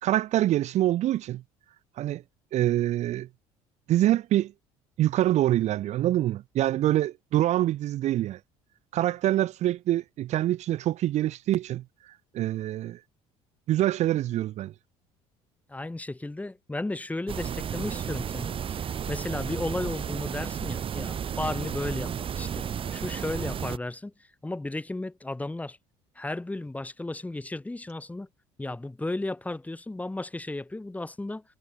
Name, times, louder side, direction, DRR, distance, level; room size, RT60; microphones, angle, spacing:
voice 1, 0.0-1.4 2.0-2.2 2.5-3.3 3.9-4.5 5.0-8.4 8.9-13.0 13.7-14.7, right 13 dB, 60° right, 1.0 m, -25 dB
voice 2, 15.7-24.1 24.4-25.8 26.2-28.3 28.6-31.4, left 2 dB, 10° left, 3.8 m, -34 dB
sound 1, 17.3-23.8, right 8 dB, 40° right, 2.0 m, -33 dB
supercardioid pair, 90°, 14 cm